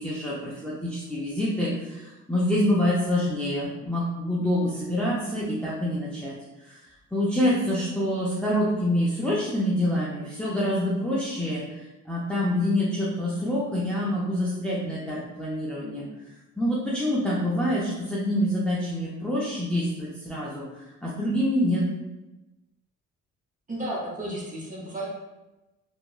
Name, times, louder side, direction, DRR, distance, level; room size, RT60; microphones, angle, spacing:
voice 1, 0.0-6.8 7.1-16.0 16.6-21.9, left 1 dB, 5° left, -7 dB, 0.5 m, -26 dB
voice 2, 23.7-25.1, right 1 dB, 25° right, -4 dB, 1.0 m, -33 dB
2.9 x 2.3 x 2.4 m, 1.0 s
cardioid pair, 90°, 30 cm